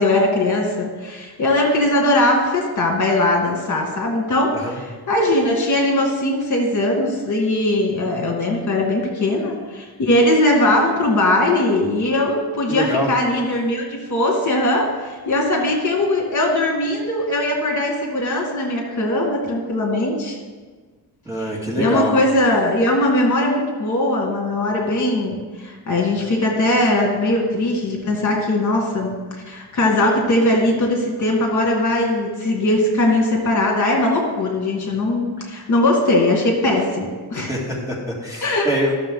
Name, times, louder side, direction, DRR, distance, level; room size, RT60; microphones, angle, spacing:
voice 1, 0.0-4.7 5.1-20.4 21.8-29.2 29.5-37.5 38.4-38.7, left 1 dB, 50° left, 0 dB, 2.0 m, -20 dB
voice 2, 12.7-13.1 21.3-22.1 37.3-38.9, equal, 10° right, -4 dB, 2.0 m, -24 dB
13.5 x 6.6 x 3.8 m, 1.4 s
cardioid pair, 130°, 40 cm